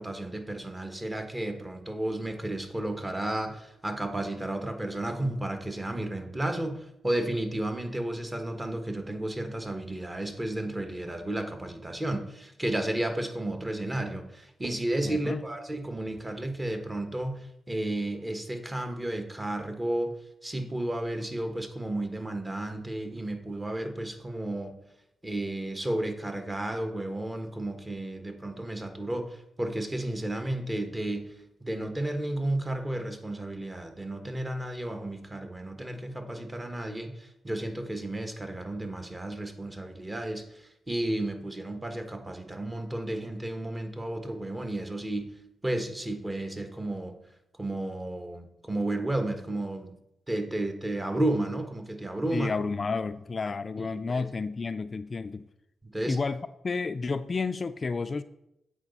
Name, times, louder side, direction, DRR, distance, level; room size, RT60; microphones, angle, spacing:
voice 1, 0.0-20.1 20.4-24.7 25.2-31.3 31.6-45.3 45.6-47.2 47.6-49.9 50.3-52.5 53.8-54.3 55.8-56.2, right 1 dB, 20° right, 6 dB, 1.2 m, -32 dB
voice 2, 15.0-15.4 52.3-55.5 56.1-58.2, left 4 dB, 45° left, 12 dB, 0.3 m, -31 dB
8.2 x 4.9 x 4.0 m, 0.83 s
supercardioid pair, 50°, 0 cm